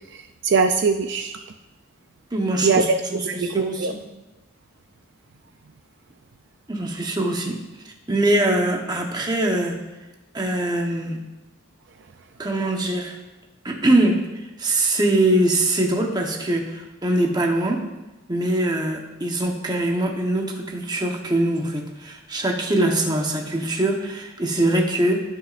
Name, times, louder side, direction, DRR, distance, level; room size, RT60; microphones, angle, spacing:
voice 1, 0.1-1.4 2.6-4.0, right 4 dB, 55° right, 6 dB, 0.4 m, -22 dB
voice 2, 2.3-4.0 6.7-7.6 8.1-9.8 10.3-11.2 12.4-13.2 13.6-14.2 14.6-17.8 18.3-25.2, right 1 dB, 20° right, 1 dB, 1.0 m, -22 dB
18.5 x 6.2 x 2.5 m, 1.0 s
head